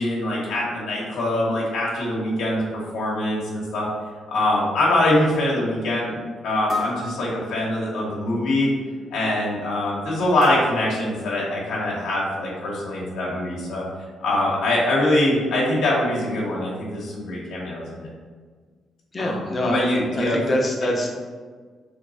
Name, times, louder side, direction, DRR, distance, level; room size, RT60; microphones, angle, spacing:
voice 1, 0.0-3.9 4.3-6.2 6.4-8.7 9.1-13.8 14.2-18.1 19.2-20.4 20.8-20.9, left 1 dB, 75° left, -5 dB, 1.0 m, -23 dB
sound 1, 3.3-3.4 4.1-4.2 4.7-4.9 6.7-7.9 10.4-11.7, left 2 dB, 55° right, 1.1 m, -34 dB
voice 2, 19.1-21.1, left 1 dB, 30° left, 0 dB, 0.8 m, -24 dB
3.4 x 2.9 x 4.1 m, 1.6 s
cardioid pair, 90°, 0 cm